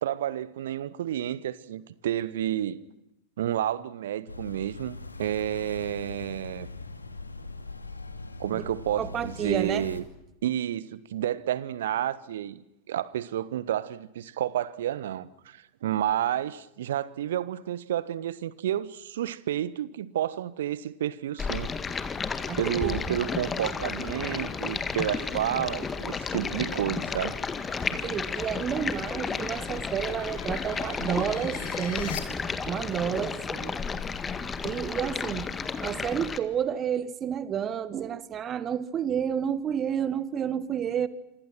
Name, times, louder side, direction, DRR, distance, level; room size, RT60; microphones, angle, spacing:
voice 1, 0.0-2.8 3.4-6.7 8.4-10.0 10.4-12.6 12.9-22.0 22.6-27.4, right 11 dB, 60° right, 1.3 m, -30 dB
sound 1, 4.3-10.0, left 3 dB, 80° left, 2.4 m, -41 dB
voice 2, 9.0-9.9 22.5-23.2 27.9-33.8 34.6-35.5 35.8-41.1, right 8 dB, 25° right, 1.6 m, -30 dB
sound 2, 21.3-32.2, left 9 dB, 60° left, 3.7 m, -48 dB
Stream, 21.4-36.4, left 5 dB, 15° left, 1.8 m, -32 dB
27.5 x 26.0 x 6.1 m
figure-of-eight pair, 90°, 0 cm